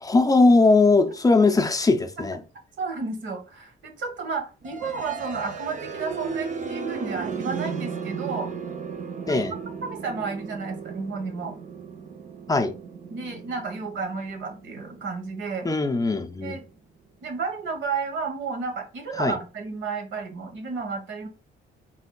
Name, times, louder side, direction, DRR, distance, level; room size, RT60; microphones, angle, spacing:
voice 1, 0.0-2.4 9.3-9.5 12.5-12.7 15.6-16.6 19.2-19.4, left 3 dB, 20° left, 0.5 m, -20 dB
voice 2, 2.8-8.5 9.3-9.5 9.8-11.6 13.1-15.7 16.4-16.6 17.2-21.3, right 4 dB, 70° right, 1.4 m, -32 dB
sound 1, 4.6-16.5, right 6 dB, 40° right, 0.6 m, -35 dB
4.2 x 3.9 x 2.3 m
cardioid pair, 90°, 20 cm